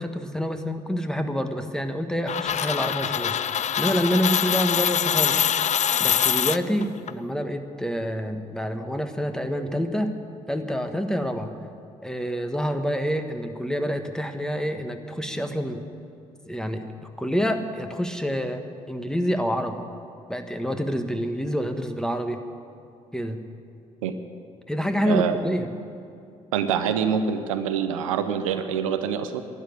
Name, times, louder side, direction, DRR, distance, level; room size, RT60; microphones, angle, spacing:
voice 1, 0.0-5.4 5.7-5.8 6.0-10.1 10.5-11.6 12.0-15.8 16.5-16.9 17.2-19.8 20.3-22.4 23.1-23.4 24.7-25.7, equal, 5° left, 7 dB, 1.6 m, -27 dB
sound 1, 2.3-7.1, left 9 dB, 45° left, 0.5 m, -24 dB
voice 2, 25.0-25.4 26.5-29.4, right 7 dB, 90° right, 9 dB, 0.7 m, -25 dB
12.0 x 10.5 x 9.6 m, 2.5 s
hypercardioid pair, 45°, 17 cm